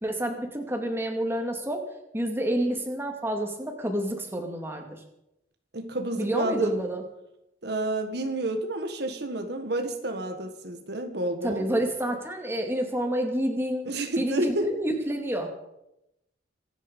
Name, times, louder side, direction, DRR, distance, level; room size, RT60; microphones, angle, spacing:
voice 1, 0.0-1.8 2.1-5.0 6.1-7.0 11.4-13.9 14.2-15.5, right 1 dB, 15° right, 2 dB, 2.5 m, -29 dB
voice 2, 5.7-6.8 7.6-11.7 13.9-14.7, right 2 dB, 65° right, 5 dB, 1.7 m, -29 dB
26.0 x 9.8 x 5.4 m, 0.87 s
head